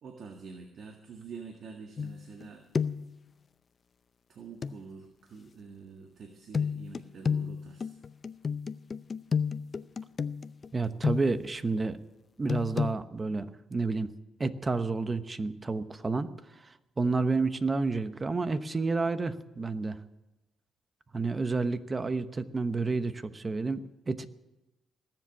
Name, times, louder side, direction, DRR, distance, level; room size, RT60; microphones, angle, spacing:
voice 1, 0.0-2.6 4.3-8.0, right 5 dB, 60° right, 3 dB, 1.7 m, -46 dB
sound 1, 2.0-2.5 2.7-3.2 4.6-4.8 6.5-11.5 12.5-12.9, left 6 dB, 40° left, 0.6 m, -31 dB
voice 2, 10.7-12.0 12.4-14.1 14.4-16.3 16.6-20.0 21.1-24.3, right 3 dB, 30° right, 11 dB, 1.0 m, -30 dB
19.5 x 7.7 x 9.6 m, 1.0 s
cardioid pair, 90°, 0 cm